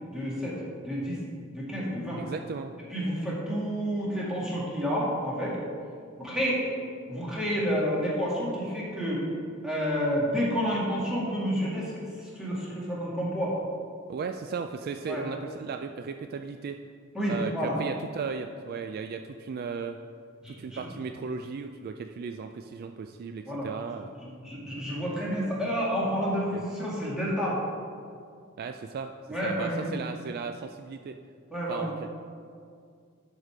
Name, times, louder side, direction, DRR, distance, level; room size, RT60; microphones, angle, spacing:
voice 1, 0.1-1.2 1.5-2.2 2.9-5.6 6.2-6.6 7.1-9.2 9.6-13.6 15.1-15.2 17.1-17.8 20.4-20.8 23.5-23.7 24.2-27.6 29.3-30.0 31.5-31.9, equal, 5° right, -7 dB, 2.2 m, -30 dB
voice 2, 2.2-2.7 14.1-16.8 17.3-20.0 20.5-24.1 26.5-26.6 28.6-29.1 29.4-31.2 31.7-32.1, right 5 dB, 45° right, 7 dB, 0.3 m, -36 dB
10.5 x 4.9 x 5.0 m, 2.2 s
head